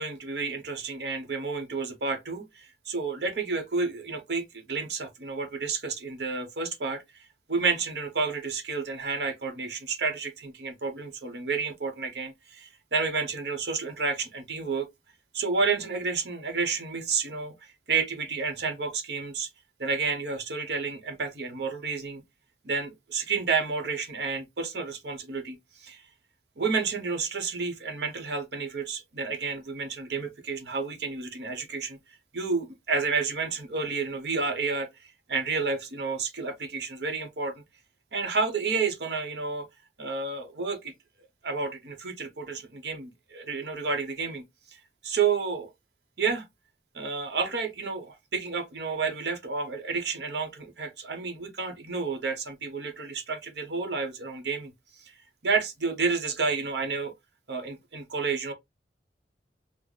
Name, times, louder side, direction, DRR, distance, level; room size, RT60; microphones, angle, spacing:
voice 1, 0.0-14.9 15.3-19.5 19.8-22.2 22.6-26.0 26.6-32.0 32.3-37.6 38.1-39.7 40.0-40.9 41.4-44.4 44.7-45.7 46.2-46.4 46.9-54.7 55.0-55.2 55.4-57.1 57.5-58.5, right 4 dB, 70° right, 0.8 m, -30 dB
3.9 x 2.0 x 3.0 m
head